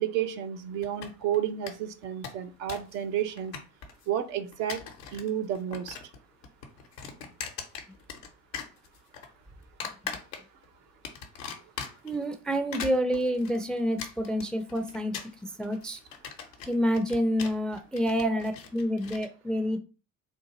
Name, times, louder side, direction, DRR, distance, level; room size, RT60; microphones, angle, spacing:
voice 1, 0.0-3.6 4.1-4.8 5.1-6.0 18.2-18.3, right 10 dB, 75° right, 6 dB, 0.6 m, -31 dB
sound 1, 0.8-1.4 1.7-1.8 2.0-3.0 3.2-4.1 4.5-5.3 5.6-6.2 6.4-8.3 8.5-9.3 9.8-10.7 11.0-12.2 12.6-19.3, left 7 dB, 85° left, 0.7 m, -40 dB
voice 2, 12.0-15.2 15.6-16.0 16.7-19.8, equal, ahead, 7 dB, 0.3 m, -28 dB
3.8 x 2.4 x 2.9 m, 0.33 s
figure-of-eight pair, 50°, 48 cm